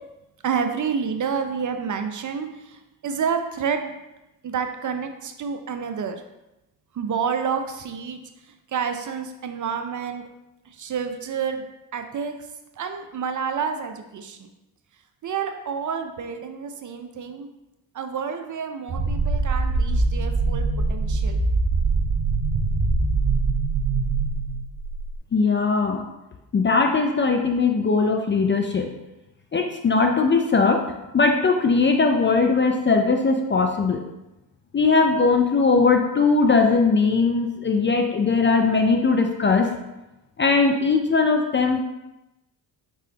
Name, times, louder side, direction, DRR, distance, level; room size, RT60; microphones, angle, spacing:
voice 1, 0.4-4.0 4.4-6.2 6.9-10.2 10.7-11.6 11.9-12.4 12.8-14.5 15.2-17.5 17.9-21.4, right 6 dB, 40° right, 7 dB, 0.5 m, -29 dB
sound 1, 18.9-25.2, right 3 dB, 55° right, 1.0 m, -23 dB
voice 2, 25.3-26.1 26.5-28.9 29.5-30.8 31.1-34.0 34.7-39.7 40.4-41.8, left 4 dB, 25° left, 4 dB, 0.4 m, -20 dB
4.6 x 4.0 x 2.8 m, 0.96 s
supercardioid pair, 60°, 50 cm